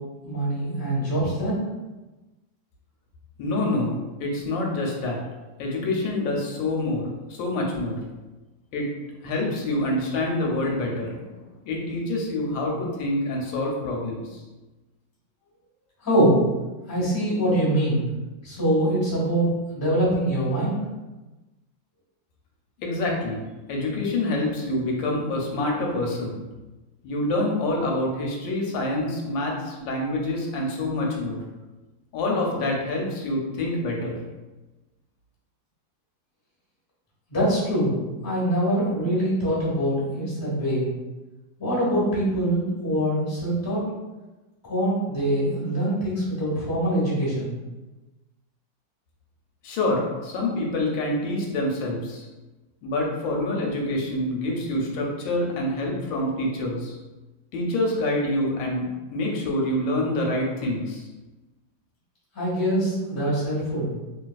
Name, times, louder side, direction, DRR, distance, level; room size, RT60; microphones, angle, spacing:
voice 1, 0.2-1.6 16.0-16.4 16.9-18.1 18.4-20.7 37.3-40.9 41.6-43.8 44.7-47.5 62.3-64.0, right 1 dB, 15° left, -7 dB, 1.1 m, -24 dB
voice 2, 3.4-3.9 4.2-5.2 5.6-8.0 8.7-8.9 9.2-14.4 22.8-23.4 23.7-26.4 27.0-31.4 32.1-34.2 49.6-52.3 52.8-57.0 57.5-61.0, left 1 dB, 85° left, -1 dB, 1.4 m, -26 dB
3.2 x 2.8 x 2.3 m, 1.1 s
omnidirectional pair, 2.0 m